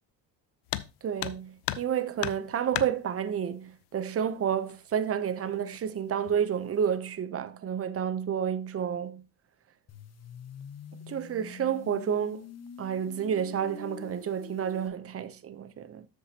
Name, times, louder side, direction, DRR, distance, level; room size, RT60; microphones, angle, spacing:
sound 1, 0.7-0.9 1.2-1.9 2.2-2.9 4.1-4.2 4.7-4.8 5.5-5.9 6.3-6.7, left 15 dB, 85° left, 0.6 m, -34 dB
voice 1, 1.0-9.2 11.1-12.5 12.8-16.1, right 8 dB, 35° right, 0.7 m, -30 dB
sound 2, 9.9-14.9, left 6 dB, 40° left, 1.2 m, -46 dB
13.0 x 5.0 x 2.9 m
cardioid pair, 115°, 40 cm